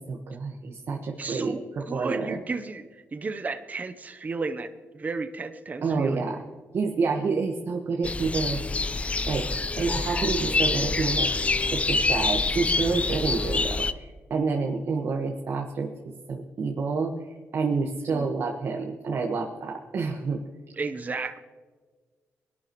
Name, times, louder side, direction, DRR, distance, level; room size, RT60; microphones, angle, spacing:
voice 1, 0.0-2.4 5.8-6.4 6.7-8.6 9.3-9.4 9.8-11.3 11.7-15.9 16.3-17.1 17.5-20.4, right 4 dB, 60° right, 1 dB, 1.4 m, -28 dB
voice 2, 1.2-4.7 4.9-6.2 18.1-18.3 20.7-21.4, right 4 dB, 30° right, 8 dB, 0.8 m, -33 dB
sound 1, 8.0-13.9, left 3 dB, 25° left, 0.5 m, -26 dB
22.0 x 11.5 x 3.1 m, 1.4 s
cardioid pair, 105°, 5 cm